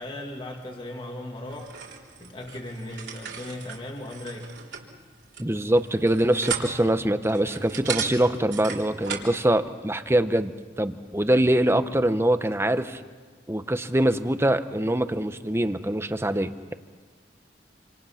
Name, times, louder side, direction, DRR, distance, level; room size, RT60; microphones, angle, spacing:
voice 1, 0.0-1.7 2.2-4.6, left 1 dB, 30° left, 1 dB, 2.1 m, -37 dB
sound 1, 1.5-9.4, right 7 dB, 75° right, 3.6 m, -36 dB
voice 2, 5.4-10.5 10.8-13.0 13.5-16.7, right 1 dB, 15° right, 10 dB, 0.9 m, -23 dB
28.0 x 26.5 x 5.8 m, 1.4 s
head